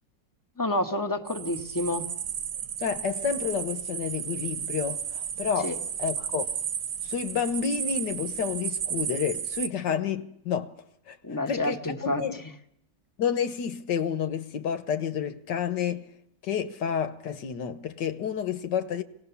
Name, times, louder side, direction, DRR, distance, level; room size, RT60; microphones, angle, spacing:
voice 1, 0.6-2.1 5.6-5.8 11.2-12.2, left 1 dB, 15° left, 1.0 m, -29 dB
sound 1, 1.3-9.7, right 8 dB, 90° right, 1.8 m, -33 dB
voice 2, 2.8-5.7 6.0-6.5 7.0-10.7 11.1-11.2 11.5-12.4 13.2-16.1 16.4-19.0, left 7 dB, 75° left, 1.7 m, -30 dB
25.0 x 18.5 x 7.0 m
omnidirectional pair, 1.9 m